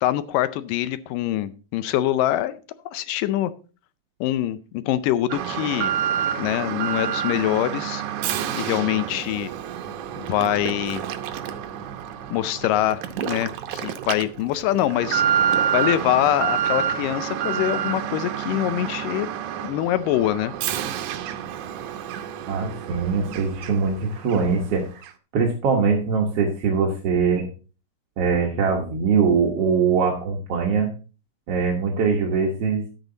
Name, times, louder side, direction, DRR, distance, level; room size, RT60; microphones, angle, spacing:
voice 1, 0.0-2.6 2.9-3.5 4.2-5.9 6.4-8.0 8.6-9.5 10.2-11.0 12.3-19.3 19.6-20.5, left 13 dB, 80° left, 14 dB, 2.2 m, -24 dB
Alarm, 5.3-24.0 24.3-24.4 25.0-25.1, right 9 dB, 75° right, 2.0 m, -28 dB
voice 2, 22.5-24.9 25.3-27.5 28.2-30.9 31.5-32.9, right 5 dB, 55° right, 0 dB, 1.9 m, -22 dB
10.5 x 8.2 x 3.9 m, 0.35 s
omnidirectional pair, 3.9 m